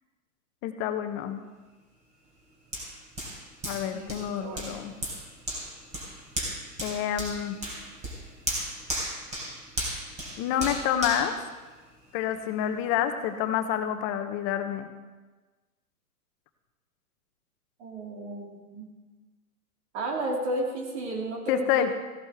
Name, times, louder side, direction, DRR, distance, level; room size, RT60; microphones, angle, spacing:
voice 1, 0.6-1.4 3.6-4.9 6.8-7.6 10.4-11.4 12.1-14.9 21.5-21.9, left 10 dB, 30° left, 8 dB, 1.0 m, -28 dB
Hands, 2.7-12.2 12.7-12.8, right 1 dB, 15° right, 3.6 m, -36 dB
voice 2, 3.9-4.8 17.8-18.9 19.9-21.9, right 1 dB, 45° right, 0 dB, 2.8 m, -33 dB
15.5 x 11.0 x 3.6 m, 1.3 s
hypercardioid pair, 125°, 45 cm